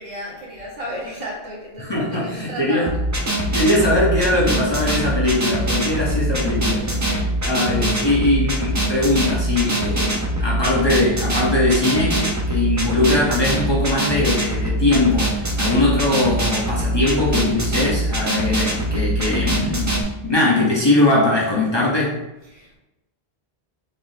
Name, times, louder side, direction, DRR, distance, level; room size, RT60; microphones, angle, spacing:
voice 1, 0.0-3.0 5.8-5.9 6.8-7.4 22.4-22.8, equal, 65° right, -6 dB, 1.6 m, -34 dB
voice 2, 1.8-2.9 3.4-6.9 7.4-19.9 20.2-22.2, left 2 dB, 30° left, -5 dB, 0.7 m, -20 dB
sound 1, 2.9-20.0, right 1 dB, 30° right, 0.3 m, -23 dB
4.0 x 3.4 x 2.7 m, 0.96 s
omnidirectional pair, 1.1 m